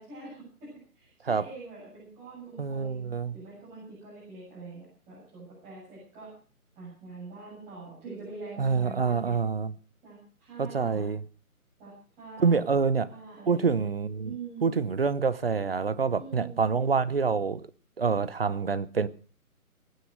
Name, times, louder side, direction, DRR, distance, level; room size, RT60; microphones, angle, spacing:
voice 1, 0.0-3.0 3.3-6.3 6.8-9.3 10.0-11.1 11.8-12.8 13.1-13.9 14.2-14.7 16.2-16.6, right 3 dB, 15° right, 7.9 m, -44 dB
voice 2, 2.6-3.3 8.6-9.7 10.6-11.2 12.4-13.1 13.5-14.4 14.6-17.6 18.0-19.1, right 5 dB, 40° right, 0.9 m, -26 dB
21.0 x 9.7 x 6.3 m
figure-of-eight pair, 160°, 45 cm